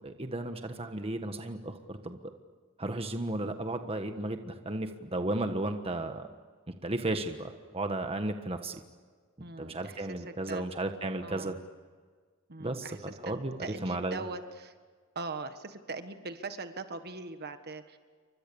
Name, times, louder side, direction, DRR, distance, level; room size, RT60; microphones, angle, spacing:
voice 1, 0.0-2.2 2.8-6.3 6.8-8.8 9.6-11.6 12.6-14.2, right 2 dB, 25° right, 6 dB, 1.5 m, -34 dB
voice 2, 9.4-10.2 10.5-10.6 11.2-11.6 12.5-12.9 13.2-14.7 15.1-18.0, right 3 dB, 45° right, 9 dB, 1.6 m, -41 dB
30.0 x 24.5 x 7.1 m, 1.5 s
head